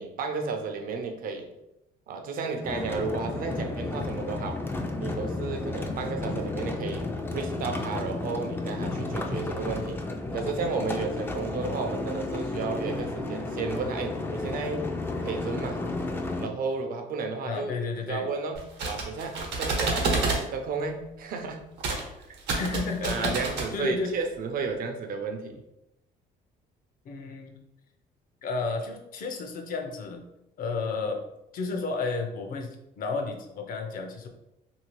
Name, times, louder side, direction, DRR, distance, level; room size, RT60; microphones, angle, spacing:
voice 1, 0.0-1.5 2.1-4.6 5.0-10.0 10.3-14.9 15.2-15.8 16.4-17.7 18.1-21.7 22.3-22.4 23.0-25.6, right 4 dB, 55° right, 5 dB, 0.6 m, -33 dB
sound 1, 2.6-16.5, left 2 dB, 15° left, 0.3 m, -32 dB
voice 2, 17.4-18.3 22.5-24.2 27.0-27.6 28.4-30.2 30.6-31.2 31.5-34.3, left 4 dB, 55° left, 4 dB, 0.6 m, -32 dB
sound 2, 18.6-20.4 21.8-22.0 22.3-23.7, right 3 dB, 80° right, 0.9 m, -28 dB
2.8 x 2.7 x 3.1 m, 0.88 s
cardioid pair, 110°, 17 cm